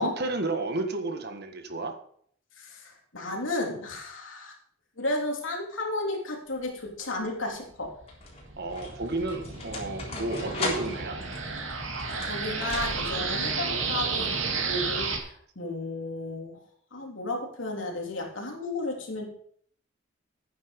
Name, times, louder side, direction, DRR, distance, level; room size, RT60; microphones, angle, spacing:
voice 1, 0.0-1.9 8.6-11.2, right 2 dB, 55° right, 7 dB, 1.5 m, -32 dB
voice 2, 2.6-4.5 5.0-7.9 12.2-15.3 15.5-16.6 16.9-19.3, left 2 dB, 70° left, 0 dB, 3.3 m, -33 dB
sound 1, 6.5-7.0 7.8-13.3, left 2 dB, 30° left, 3.9 m, -38 dB
sound 2, 7.8-15.2, right 4 dB, 80° right, 2.2 m, -32 dB
12.0 x 9.5 x 5.2 m, 0.62 s
head